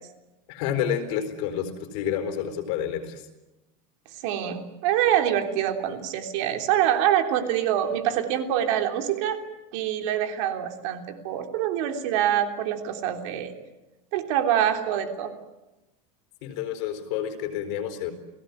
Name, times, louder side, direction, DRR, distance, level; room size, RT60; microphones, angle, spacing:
voice 1, 0.5-3.2 16.4-18.1, left 9 dB, 55° left, 8 dB, 4.2 m, -29 dB
voice 2, 4.2-9.4 9.7-13.5 14.1-15.3, right 10 dB, 55° right, 5 dB, 3.4 m, -25 dB
29.5 x 18.5 x 9.7 m, 1.0 s
supercardioid pair, 180°, 19 cm